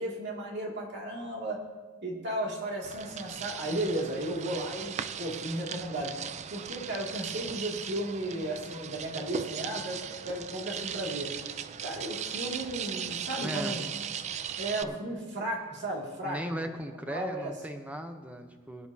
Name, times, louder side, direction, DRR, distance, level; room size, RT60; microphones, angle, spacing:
voice 1, 0.0-1.6 2.0-6.1 6.5-10.0 10.2-11.3 11.8-13.9 14.6-16.4 17.1-17.5, right 1 dB, 50° right, -2 dB, 2.3 m, -34 dB
sound 1, 2.8-14.8, right 8 dB, 30° right, 0.3 m, -38 dB
voice 2, 13.4-13.8 14.8-15.0 16.2-18.9, equal, 5° right, 5 dB, 0.8 m, -37 dB
21.5 x 9.8 x 2.8 m, 1.4 s
head